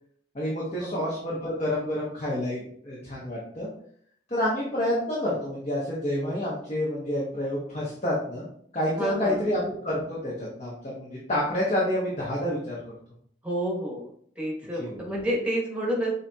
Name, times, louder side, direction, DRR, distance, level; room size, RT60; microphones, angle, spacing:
voice 1, 0.3-3.7 4.3-8.5 8.7-12.8 14.8-15.0, left 1 dB, 35° left, -6 dB, 1.0 m, -28 dB
voice 2, 9.0-9.5 13.4-14.1 14.4-16.1, right 1 dB, 5° right, -3 dB, 1.1 m, -29 dB
6.8 x 2.8 x 2.3 m, 0.63 s
head